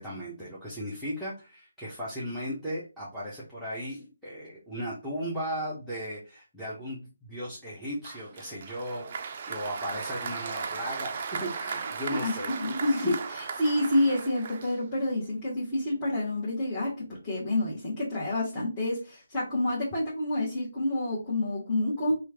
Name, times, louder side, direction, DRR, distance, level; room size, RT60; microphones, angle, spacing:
voice 1, 0.0-12.5 13.0-13.1, equal, ahead, -11 dB, 0.9 m, -36 dB
Applause, 8.0-15.2, right 5 dB, 40° right, 0.4 m, -37 dB
voice 2, 12.1-22.1, left 1 dB, 20° left, -9 dB, 1.4 m, -28 dB
3.0 x 2.5 x 3.5 m, 0.31 s
figure-of-eight pair, 150°, 0 cm